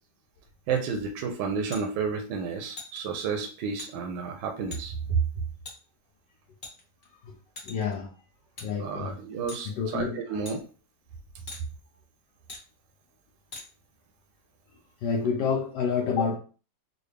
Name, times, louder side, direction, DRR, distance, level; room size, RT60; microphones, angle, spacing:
voice 1, 0.7-5.2 8.8-10.6, right 5 dB, 80° right, 1.3 m, -31 dB
sound 1, 1.7-1.8 2.8-3.0 3.8-3.9 4.7-4.8 5.6-5.8 6.6-7.1 7.6-7.9 8.6-8.7 9.5-9.7 10.4-10.6 11.5-11.6 12.5-12.6 13.5-13.7, left 3 dB, 35° left, 0.9 m, -41 dB
voice 2, 7.6-8.1 8.6-9.2 9.6-10.4 15.0-16.4, left 6 dB, 75° left, 1.2 m, -29 dB
3.9 x 2.2 x 3.3 m
omnidirectional pair, 2.0 m